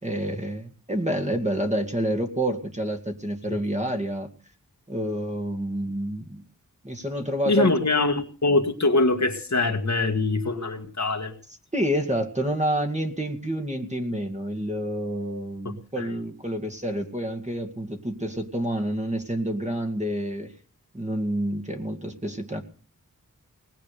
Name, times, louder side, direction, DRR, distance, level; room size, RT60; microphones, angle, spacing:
voice 1, 0.0-4.3 4.9-6.4 6.8-7.7 11.7-20.5 20.9-22.6, right 1 dB, 20° right, 5 dB, 2.2 m, -28 dB
voice 2, 7.5-11.3 16.0-16.1, left 2 dB, 55° left, 6 dB, 1.8 m, -23 dB
19.5 x 8.5 x 6.8 m, 0.41 s
wide cardioid pair, 70°, 33 cm